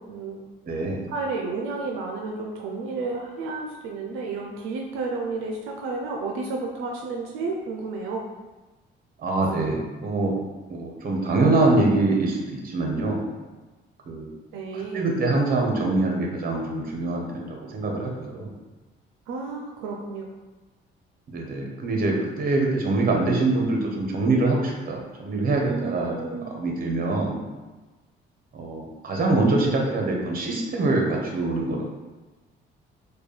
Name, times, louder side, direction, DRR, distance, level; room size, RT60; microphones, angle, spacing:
voice 1, 0.1-0.4 1.1-8.3 14.5-15.1 19.3-20.3 25.7-26.5, right 3 dB, 85° right, 0 dB, 0.5 m, -31 dB
voice 2, 0.6-1.0 9.2-10.4 10.7-13.2 14.1-14.3 14.7-18.5 21.3-27.4 28.5-31.8, right 2 dB, 45° right, 0 dB, 0.9 m, -24 dB
4.4 x 2.3 x 3.2 m, 1.2 s
cardioid pair, 100°, 20 cm